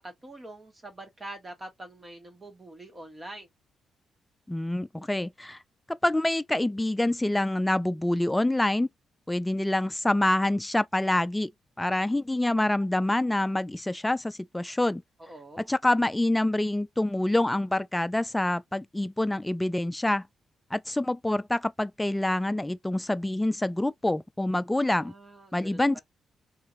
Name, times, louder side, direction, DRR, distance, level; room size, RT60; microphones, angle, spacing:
voice 1, 0.0-3.5 15.2-15.7 24.9-26.0, right 1 dB, 30° right, 1.5 m, -44 dB
voice 2, 4.5-5.6 5.9-8.9 9.3-11.5 11.8-15.0 15.6-20.3 20.7-25.1 25.5-26.0, left 1 dB, 10° left, 0.4 m, -26 dB
2.9 x 2.6 x 2.5 m
hypercardioid pair, 50°, 0 cm